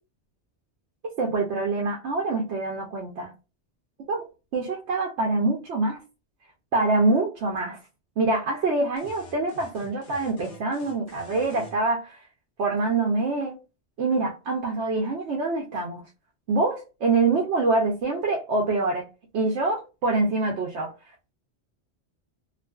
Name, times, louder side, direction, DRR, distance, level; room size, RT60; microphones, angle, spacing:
voice 1, 1.0-3.3 4.1-4.3 4.5-6.0 6.7-7.8 8.2-12.2 12.6-13.6 14.0-16.0 16.5-19.0 19.3-20.9, right 3 dB, 80° right, 0.9 m, -25 dB
sound 1, 9.0-11.8, equal, 50° left, 0.7 m, -46 dB
2.3 x 2.3 x 2.2 m
omnidirectional pair, 1.1 m